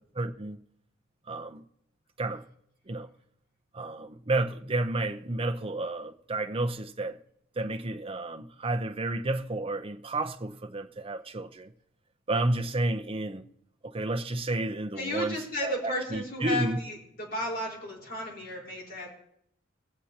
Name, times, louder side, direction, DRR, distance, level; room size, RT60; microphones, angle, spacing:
voice 1, 0.2-0.6 1.3-1.6 2.2-2.4 2.9-3.1 3.7-7.2 7.6-11.7 12.3-13.5 13.9-16.8, right 2 dB, 30° right, 0.7 m, -31 dB
voice 2, 15.0-19.1, left 1 dB, 55° left, 4.5 m, -34 dB
20.5 x 7.9 x 2.9 m
head